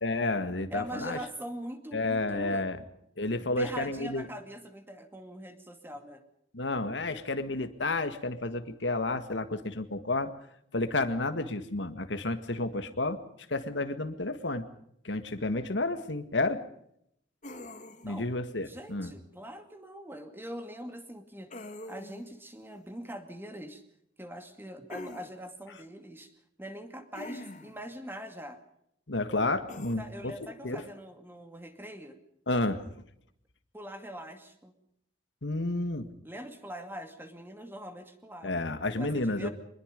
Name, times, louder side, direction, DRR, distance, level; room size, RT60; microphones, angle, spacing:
voice 1, 0.0-1.2 1.9-2.8 3.2-4.3 6.5-10.3 10.7-13.2 13.5-14.7 15.0-16.6 18.0-19.1 29.1-30.3 30.6-30.8 32.5-32.8 35.4-36.1 38.4-39.5, left 2 dB, 85° left, 9 dB, 1.8 m, -31 dB
voice 2, 0.7-2.7 3.4-6.2 18.0-18.3 18.6-21.5 21.9-23.8 24.2-26.3 26.6-28.6 30.0-32.2 33.7-34.7 36.2-39.5, equal, 10° right, 7 dB, 2.4 m, -42 dB
sound 1, 17.4-18.2 21.5-22.3 24.9-25.3 27.1-27.8 29.7-29.9, left 1 dB, 45° left, 2.3 m, -44 dB
24.5 x 21.0 x 5.3 m, 0.73 s
head